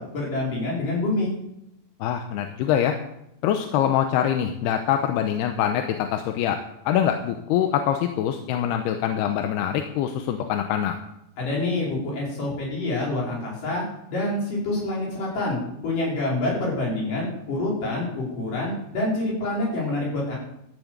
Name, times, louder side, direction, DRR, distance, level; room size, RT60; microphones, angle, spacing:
voice 1, 0.0-1.3 11.4-20.4, left 2 dB, 55° left, -4 dB, 6.6 m, -27 dB
voice 2, 2.0-3.0 3.4-6.6 6.9-10.9, left 10 dB, 85° left, 6 dB, 2.9 m, -24 dB
13.5 x 9.0 x 8.0 m, 0.81 s
omnidirectional pair, 4.7 m